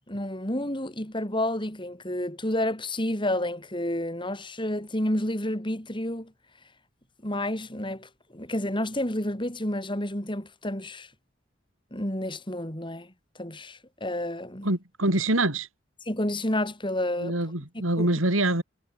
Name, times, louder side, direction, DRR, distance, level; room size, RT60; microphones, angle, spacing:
voice 1, 0.1-6.3 7.2-11.1 11.9-14.7 16.1-17.4 18.0-18.1, left 1 dB, 25° left, 5.1 m, -30 dB
voice 2, 14.6-15.7 17.2-18.6, right 1 dB, 85° right, 4.7 m, -25 dB
head